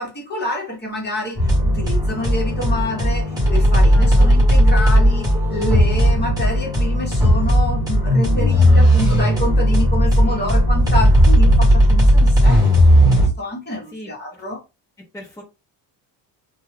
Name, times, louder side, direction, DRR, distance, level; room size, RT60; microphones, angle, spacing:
voice 1, 0.0-12.7 13.0-14.6, left 1 dB, 25° left, 1.2 m, -27 dB
sound 1, 1.4-13.3, equal, 10° right, 1.4 m, -15 dB
voice 2, 3.9-4.4 10.2-10.6 13.9-14.1 15.1-15.4, left 1 dB, 10° left, 0.9 m, -37 dB
2.6 x 2.3 x 3.3 m
cardioid pair, 125°, 41 cm